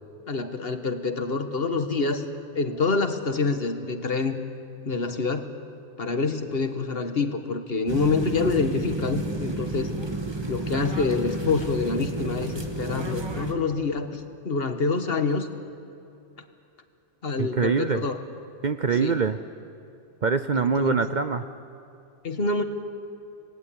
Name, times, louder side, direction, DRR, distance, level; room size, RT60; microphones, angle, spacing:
voice 1, 0.3-2.2 2.5-4.4 4.8-5.5 6.0-9.9 10.5-15.5 17.2-18.2 19.0-19.2 20.5-21.1 22.2-22.6, left 4 dB, 55° left, 7 dB, 1.6 m, -26 dB
sound 1, 7.9-13.5, right 2 dB, 20° right, 1.7 m, -31 dB
voice 2, 17.4-18.0 18.6-19.4 20.2-21.4, right 5 dB, 45° right, 10 dB, 0.7 m, -24 dB
27.5 x 18.5 x 8.6 m, 2.6 s
omnidirectional pair, 1.3 m